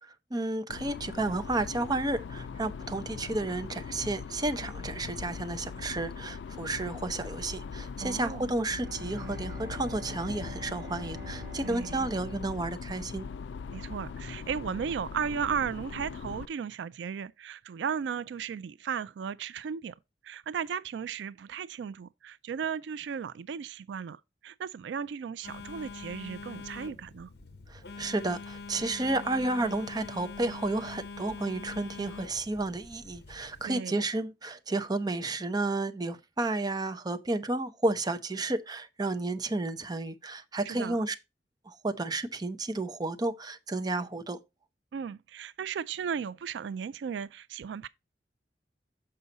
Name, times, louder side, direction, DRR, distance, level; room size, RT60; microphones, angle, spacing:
voice 1, 0.0-13.3 27.7-41.1 41.7-44.4, right 2 dB, 25° right, 0.7 m, -32 dB
sound 1, 0.7-16.5, left 5 dB, 80° left, 0.3 m, -41 dB
voice 2, 8.0-8.5 11.6-12.1 13.7-20.0 20.2-27.3 33.6-34.0 40.7-41.0 44.9-47.9, right 7 dB, 85° right, 0.3 m, -35 dB
Bowed string instrument, 8.6-13.5, right 2 dB, 65° right, 1.4 m, -47 dB
Telephone, 25.4-33.6, left 4 dB, 65° left, 1.0 m, -44 dB
6.7 x 5.5 x 3.9 m
head